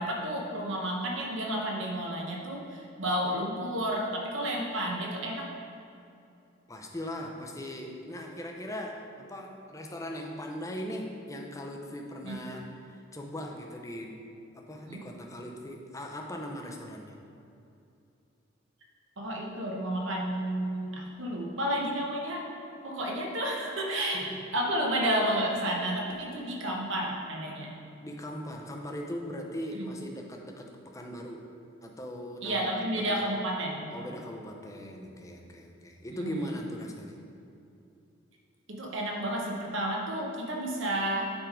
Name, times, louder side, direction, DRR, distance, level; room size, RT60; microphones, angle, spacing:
voice 1, 0.0-5.5 12.2-12.4 14.9-15.0 19.2-22.5 22.8-24.2 24.5-27.7 29.7-29.9 32.4-33.9 36.2-36.4 38.7-41.3, right 1 dB, 65° right, -1 dB, 1.2 m, -31 dB
voice 2, 6.7-14.2 14.5-17.1 24.1-24.4 28.0-31.5 31.8-33.2 33.9-37.2, equal, 15° left, 1 dB, 0.6 m, -39 dB
8.9 x 3.7 x 4.9 m, 2.7 s
head